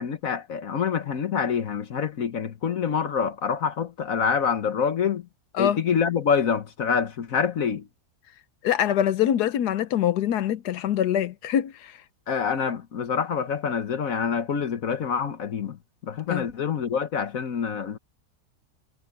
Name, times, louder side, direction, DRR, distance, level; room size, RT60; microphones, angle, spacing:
voice 1, 0.0-5.3 5.6-7.9 12.3-15.8 16.0-18.0, left 6 dB, 60° left, 1.4 m, -26 dB
voice 2, 8.6-12.0 16.3-16.4, left 10 dB, 90° left, 1.4 m, -24 dB
omnidirectional pair, 1.7 m